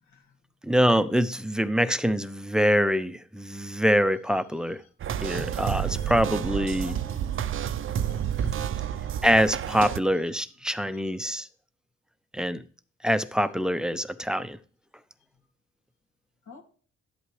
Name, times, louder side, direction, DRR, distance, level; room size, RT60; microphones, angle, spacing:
voice 1, 0.1-0.4 5.3-5.4 5.8-6.1 6.8-7.5 8.0-9.1 16.5-16.6, left 2 dB, 65° left, 2.6 m, -47 dB
voice 2, 0.6-4.8 5.2-7.0 9.2-11.5 12.3-12.6 13.0-14.6, equal, ahead, 0.6 m, -24 dB
sound 1, 5.0-10.0, right 9 dB, 45° right, 0.5 m, -30 dB
12.0 x 8.1 x 3.2 m
cardioid pair, 90°, 30 cm